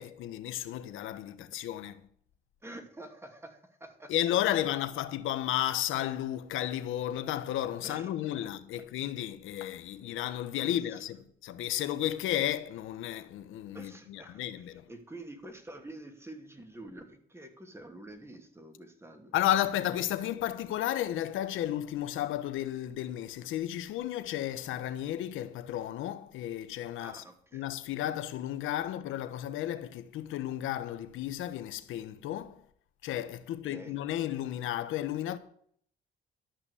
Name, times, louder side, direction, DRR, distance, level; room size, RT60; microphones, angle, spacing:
voice 1, 0.0-2.0 4.1-14.9 19.3-27.2 27.5-32.6 33.0-35.4, left 12 dB, 85° left, 1.1 m, -33 dB
voice 2, 2.6-4.1 7.8-8.1 10.6-11.1 13.7-19.3 27.0-27.7 33.6-34.0, right 1 dB, 15° right, 2.6 m, -47 dB
12.5 x 5.9 x 8.4 m
cardioid pair, 90°, 20 cm